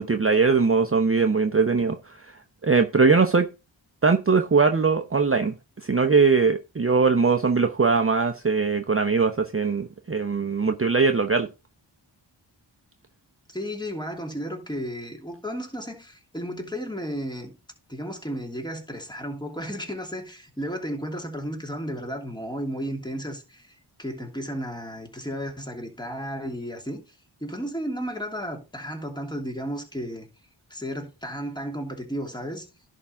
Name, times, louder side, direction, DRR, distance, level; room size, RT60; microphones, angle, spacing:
voice 1, 0.0-2.3 2.6-3.5 4.0-5.5 5.8-11.5, right 4 dB, 30° right, 0.8 m, -21 dB
voice 2, 13.5-17.5 17.9-27.1 27.4-30.3 30.7-32.7, equal, 10° left, 2.8 m, -33 dB
11.0 x 3.7 x 5.8 m
cardioid pair, 40°, 47 cm